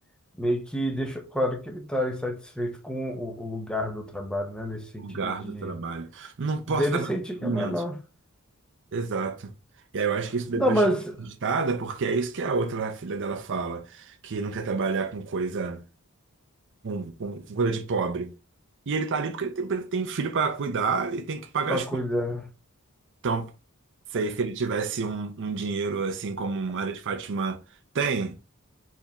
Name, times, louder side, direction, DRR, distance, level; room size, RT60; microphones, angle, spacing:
voice 1, 0.4-5.8 6.7-8.0 10.5-11.1 21.7-22.5, equal, 5° left, 0.8 m, -28 dB
voice 2, 5.0-7.1 7.4-7.8 8.9-9.5 9.9-10.8 11.4-15.8 16.8-18.3 18.9-21.8 23.2-23.5 24.1-27.6 27.9-28.4, right 4 dB, 55° right, 0.6 m, -29 dB
4.5 x 3.6 x 2.9 m
head